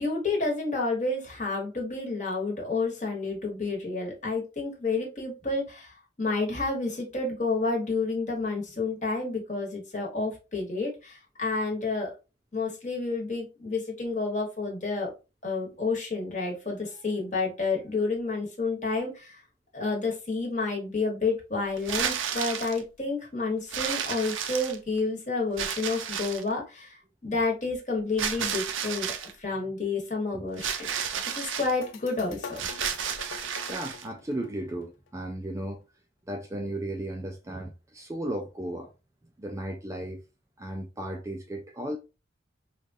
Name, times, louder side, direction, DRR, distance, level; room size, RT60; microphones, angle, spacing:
voice 1, 0.0-12.1 12.5-15.1 15.4-19.4 19.7-29.1 29.4-30.9 31.3-32.7, left 3 dB, 40° left, 1.2 m, -30 dB
sound 1, 21.8-22.8 23.7-25.0 25.6-26.5 28.2-29.3 30.6-31.7 32.5-34.1, right 7 dB, 75° right, 0.5 m, -32 dB
sound 2, 31.7-35.2, left 5 dB, 75° left, 0.5 m, -44 dB
voice 2, 33.7-35.8 36.3-38.9 39.4-40.2 40.6-42.0, right 1 dB, 15° right, 0.3 m, -35 dB
4.6 x 2.4 x 2.6 m
head